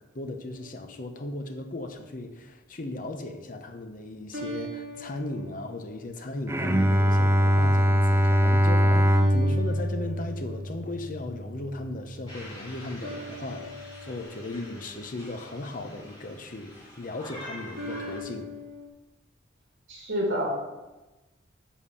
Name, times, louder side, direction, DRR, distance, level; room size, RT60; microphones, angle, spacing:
voice 1, 0.1-18.5, left 2 dB, 45° left, 6 dB, 0.9 m, -37 dB
sound 1, 0.5-1.4 4.3-6.4 6.9-7.4 9.1-11.1 13.0-15.5 17.7-18.9, equal, 75° right, 2.4 m, -41 dB
Bowed string instrument, 6.5-11.7, equal, 15° right, 0.5 m, -23 dB
sound 2, 12.3-18.2, left 1 dB, 30° left, 3.5 m, -46 dB
voice 2, 19.9-20.6, equal, 90° right, -1 dB, 2.5 m, -28 dB
7.2 x 6.7 x 5.6 m, 1.1 s
head